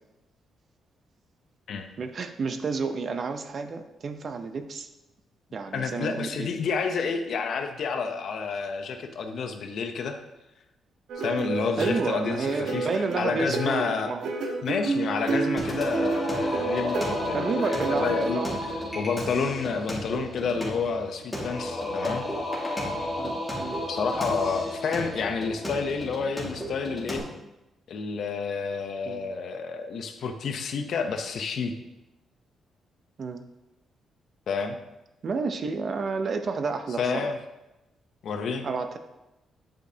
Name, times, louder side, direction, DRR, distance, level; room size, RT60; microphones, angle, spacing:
voice 1, 2.0-4.9 5.5-6.5 11.8-14.3 15.5-15.7 17.3-18.6 23.2-23.8 29.0-29.2 33.2-33.4 35.2-37.3 38.6-39.0, right 4 dB, 45° right, 7 dB, 0.6 m, -30 dB
voice 2, 5.7-10.2 11.2-12.9 13.2-14.1 14.6-18.4 18.9-22.2 23.9-27.2 27.9-31.7 34.5-34.8 37.0-37.4 38.2-38.6, left 5 dB, 65° left, 6 dB, 0.7 m, -29 dB
sound 1, 11.1-18.4, right 3 dB, 80° right, 1.0 m, -31 dB
Singing, 15.6-27.2, left 1 dB, 10° left, 1.9 m, -32 dB
9.0 x 5.0 x 2.8 m, 0.98 s
cardioid pair, 115°, 0 cm